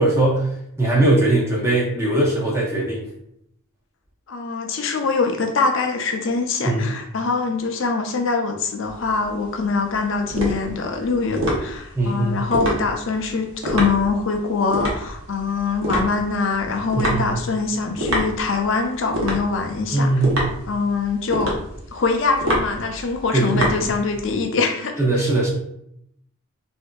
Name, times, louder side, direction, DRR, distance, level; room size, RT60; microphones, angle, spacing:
voice 1, 0.0-3.0 6.6-7.0 12.0-12.5 17.0-17.4 19.9-20.4 23.3-23.9 25.0-25.5, right 2 dB, 10° right, -4 dB, 0.7 m, -20 dB
voice 2, 4.3-20.1 20.7-21.6 21.9-25.3, left 4 dB, 60° left, 3 dB, 0.5 m, -23 dB
sound 1, 8.9-24.4, equal, 75° right, 0.9 m, -27 dB
3.3 x 2.6 x 2.3 m, 0.74 s
head